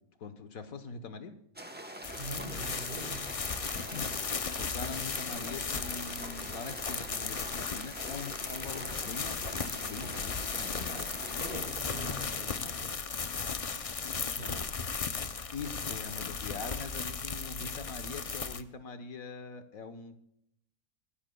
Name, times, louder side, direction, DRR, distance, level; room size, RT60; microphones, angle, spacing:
voice 1, 0.2-1.3 3.5-4.1 4.6-11.1 15.5-20.1, left 4 dB, 75° left, 9 dB, 1.5 m, -43 dB
sound 1, 1.6-12.9, right 1 dB, 10° right, 0.9 m, -45 dB
sound 2, 2.0-18.6, left 5 dB, 45° left, 0.4 m, -36 dB
voice 2, 2.2-3.3 10.9-11.1 11.4-13.0 14.4-14.6, right 1 dB, 35° right, 2 dB, 3.1 m, -43 dB
24.0 x 13.0 x 2.3 m, 0.75 s
omnidirectional pair, 1.5 m